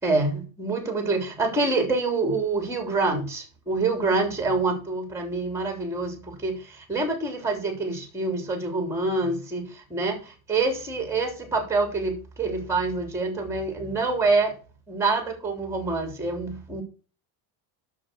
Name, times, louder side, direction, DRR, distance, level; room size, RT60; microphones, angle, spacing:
voice 1, 0.0-14.6 14.9-16.8, right 3 dB, 5° right, 4 dB, 3.5 m, -26 dB
8.6 x 6.8 x 6.3 m, 0.36 s
cardioid pair, 140°, 45 cm